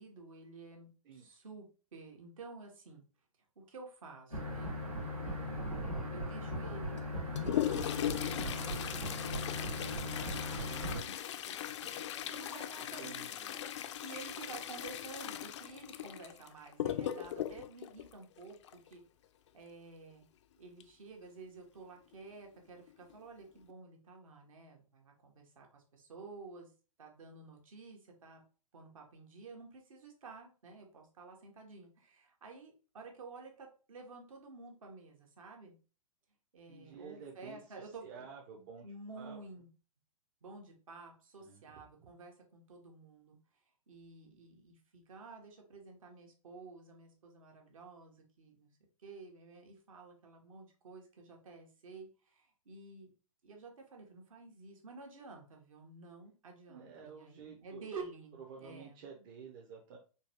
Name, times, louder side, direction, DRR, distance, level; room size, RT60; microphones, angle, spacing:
voice 1, 0.0-3.0 3.6-4.8 5.2-9.1 9.4-10.8 11.1-11.2 11.5-11.6 12.2-13.7 14.0-19.0 19.5-20.2 20.6-26.7 27.0-28.4 28.7-35.8 36.5-38.2 38.8-39.7 40.4-43.4 43.9-48.7 49.0-53.1 53.4-59.0, right 3 dB, 65° right, 1 dB, 1.1 m, -51 dB
sound 1, 4.3-11.0, left 1 dB, 90° right, 1.5 m, -38 dB
Toilet flush, 6.9-18.9 20.8-20.9 21.2-21.3 22.1-22.2 22.9-23.1 23.6-23.7, left 11 dB, 50° left, 0.4 m, -39 dB
voice 2, 12.8-13.5 36.7-37.6 38.0-39.4 41.4-41.8 56.7-57.9 58.5-60.0, right 6 dB, 40° right, 0 dB, 0.6 m, -51 dB
3.8 x 2.3 x 2.8 m, 0.35 s
figure-of-eight pair, 115°, 19 cm